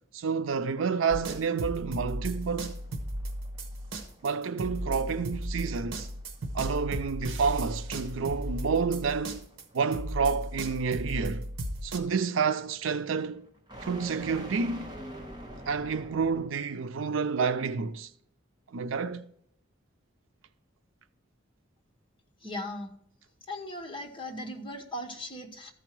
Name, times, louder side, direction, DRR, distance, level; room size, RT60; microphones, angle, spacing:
voice 1, 0.1-2.8 4.2-6.1 6.5-9.4 9.7-11.5 11.8-13.4 13.8-14.9 15.7-18.1 18.7-19.2, right 5 dB, 90° right, 0.5 m, -29 dB
sound 1, 1.1-9.6 9.9-12.0, right 1 dB, 70° right, 1.1 m, -35 dB
sound 2, 2.1-16.7, equal, 20° right, 1.3 m, -48 dB
voice 2, 22.4-22.9 23.5-25.7, left 1 dB, 25° left, 1.1 m, -38 dB
14.0 x 5.0 x 4.6 m
head